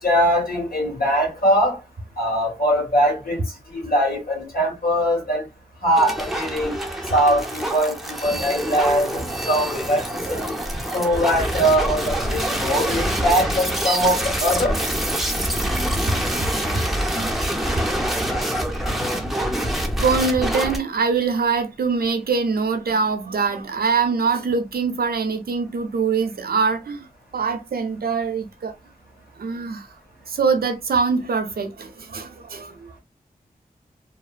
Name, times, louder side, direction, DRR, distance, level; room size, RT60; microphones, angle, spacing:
voice 1, 0.0-1.8 2.2-3.4 3.7-5.4 5.8-6.7 7.1-10.0 10.3-10.6 10.9-14.8, equal, 70° left, 1.6 m, -21 dB
sound 1, 6.0-20.8, right 1 dB, ahead, 0.7 m, -25 dB
voice 2, 18.7-19.2 20.0-27.0 27.3-28.7 29.4-29.9 30.3-32.9, right 5 dB, 80° right, 0.6 m, -23 dB
2.9 x 2.0 x 2.4 m
wide cardioid pair, 60°, 16 cm